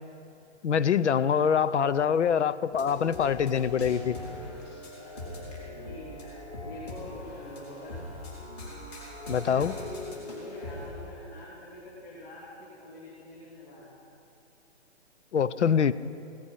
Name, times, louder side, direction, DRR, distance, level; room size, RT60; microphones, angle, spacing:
voice 1, 0.6-4.2 9.3-9.7 15.3-15.9, left 7 dB, 75° left, 16 dB, 0.7 m, -24 dB
sound 1, 2.7-10.9, left 2 dB, 35° left, 3.2 m, -41 dB
voice 2, 5.0-6.3 6.6-8.0 9.4-14.1, left 2 dB, 55° left, -6 dB, 3.3 m, -45 dB
17.0 x 12.5 x 5.7 m, 2.7 s
hypercardioid pair, 170°, 35 cm